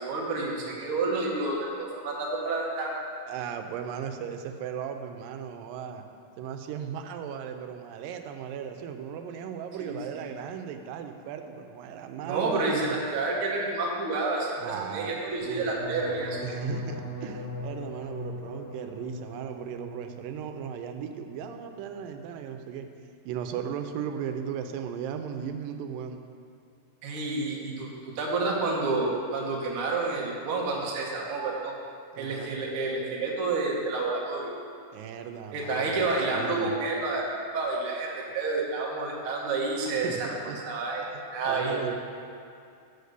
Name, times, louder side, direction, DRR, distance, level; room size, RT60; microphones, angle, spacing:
voice 1, 0.0-3.0 9.8-10.3 12.2-16.4 27.0-31.7 32.2-34.5 35.5-37.2 37.5-41.0 41.3-41.9, right 3 dB, 65° right, -2 dB, 1.3 m, -29 dB
voice 2, 3.3-6.1 6.4-13.0 14.6-15.8 16.4-22.9 23.3-26.2 32.1-32.5 34.9-36.8 40.0-40.6 41.5-41.9, right 8 dB, 90° right, 6 dB, 2.2 m, -36 dB
sound 1, 15.4-21.3 21.6-22.1 22.4-22.8, left 1 dB, 50° left, 1.8 m, -40 dB
6.5 x 5.0 x 6.6 m, 2.5 s
omnidirectional pair, 3.9 m